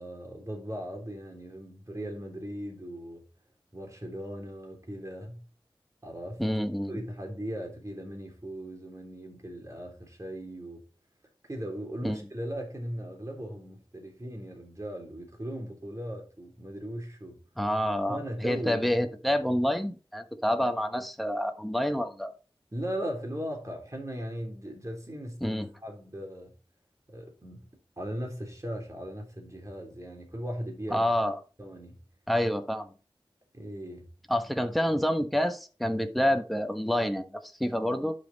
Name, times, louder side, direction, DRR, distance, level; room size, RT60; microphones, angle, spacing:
voice 1, 0.0-3.2 3.7-5.4 6.0-6.4 6.9-10.8 11.5-17.4 18.1-18.9 22.7-26.6 27.1-31.1 31.6-32.0 33.5-34.1, equal, 35° right, 3.6 m, -38 dB
voice 2, 6.4-7.0 12.0-12.2 17.6-22.3 25.4-25.7 30.9-31.4 32.3-32.9 34.3-38.1, equal, ahead, 1.3 m, -28 dB
11.5 x 5.5 x 4.1 m
wide cardioid pair, 65°, 9 cm